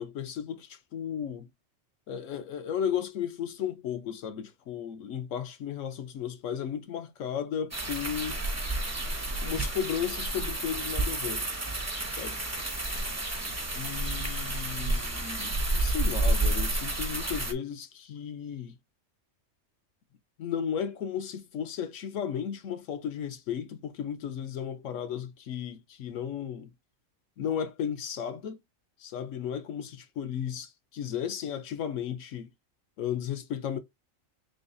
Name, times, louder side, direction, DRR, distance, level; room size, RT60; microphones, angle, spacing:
voice 1, 0.0-1.5 2.1-8.4 9.4-11.4 12.0-12.4 13.4-18.8 20.4-26.7 27.4-28.6 29.0-32.5 33.0-33.8, left 8 dB, 75° left, 1.0 m, -34 dB
sound 1, 7.7-17.5, right 2 dB, 20° right, 0.4 m, -30 dB
3.8 x 3.3 x 2.5 m
omnidirectional pair, 1.4 m